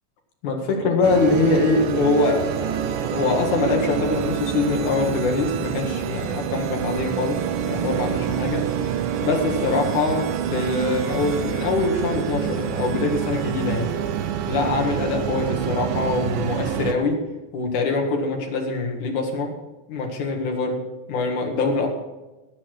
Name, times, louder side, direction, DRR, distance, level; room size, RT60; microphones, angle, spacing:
voice 1, 0.4-8.6 9.2-13.9 14.5-17.2 17.5-19.5 19.9-20.8 21.1-21.9, left 3 dB, 65° left, 2 dB, 3.2 m, -23 dB
sound 1, 1.0-16.9, right 9 dB, 85° right, 2.5 m, -27 dB
17.5 x 8.5 x 4.7 m, 1.1 s
omnidirectional pair, 3.8 m